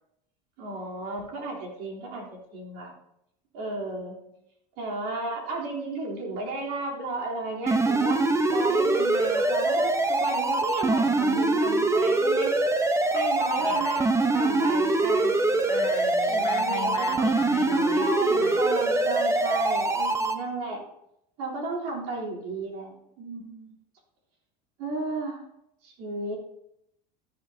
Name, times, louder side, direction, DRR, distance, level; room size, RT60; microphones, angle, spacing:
voice 1, 0.6-2.9 3.5-4.2 4.8-8.2 8.5-12.5 13.1-15.9 16.3-17.4 17.9-20.8 21.4-23.7 24.8-25.4 25.8-26.4, right 2 dB, 75° right, 3.7 m, -33 dB
sound 1, 7.7-20.3, right 2 dB, 15° right, 1.0 m, -24 dB
voice 2, 13.6-14.1 15.7-18.7, left 10 dB, 80° left, 1.2 m, -38 dB
13.0 x 10.5 x 2.8 m
supercardioid pair, 105°, 21 cm